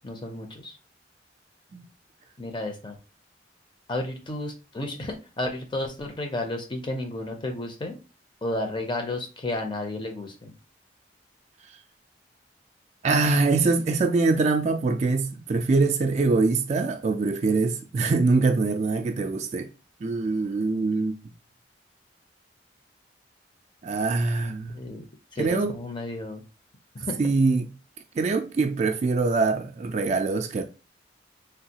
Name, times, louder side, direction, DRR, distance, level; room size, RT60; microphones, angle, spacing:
voice 1, 0.0-0.7 2.4-3.0 3.9-7.9 8.4-10.5 24.7-25.0 25.3-26.4 26.9-27.3, left 2 dB, 25° left, 0.5 m, -32 dB
voice 2, 13.0-19.7 20.0-21.2 23.8-24.8 25.4-25.8 27.2-27.7 28.2-30.6, right 3 dB, 40° right, 0.3 m, -23 dB
3.4 x 2.3 x 2.8 m
head